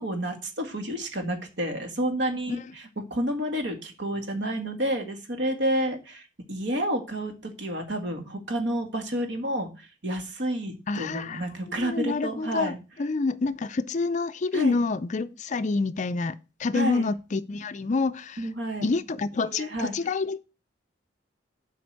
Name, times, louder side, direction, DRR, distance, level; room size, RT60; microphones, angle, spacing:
voice 1, 0.0-12.8 14.5-14.8 16.7-17.1 18.4-19.0 19.5-19.9, right 1 dB, 60° right, 1.8 m, -30 dB
voice 2, 10.9-11.5 11.8-18.5 18.8-20.4, left 3 dB, 40° left, 0.4 m, -28 dB
7.8 x 5.1 x 6.5 m
head